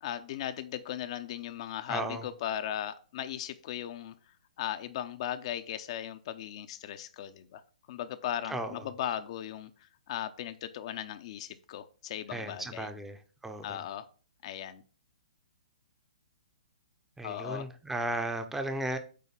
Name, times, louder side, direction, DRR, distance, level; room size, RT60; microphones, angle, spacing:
voice 1, 0.0-4.1 4.6-7.6 7.9-12.9 13.6-14.1 14.4-14.8 17.2-17.7, left 11 dB, 45° left, 10 dB, 0.7 m, -37 dB
voice 2, 1.9-2.2 8.5-8.8 12.3-13.2 13.4-13.8 17.2-19.0, right 1 dB, 5° right, 7 dB, 0.8 m, -35 dB
8.4 x 3.1 x 5.9 m, 0.37 s
figure-of-eight pair, 125°, 4 cm